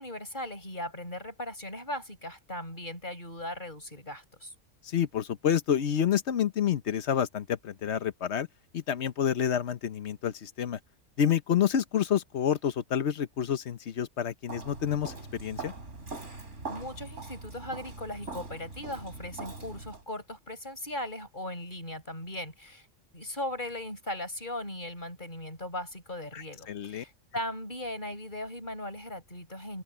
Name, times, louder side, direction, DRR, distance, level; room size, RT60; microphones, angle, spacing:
voice 1, 0.0-4.5 16.7-22.9 23.1-29.8, left 1 dB, 40° left, 7.9 m, -38 dB
voice 2, 4.8-8.5 8.7-10.8 11.2-15.7 26.3-27.0, left 9 dB, 60° left, 1.2 m, -28 dB
Walk footsteps, 14.5-20.0, right 3 dB, 70° right, 4.0 m, -42 dB
omnidirectional pair, 1.3 m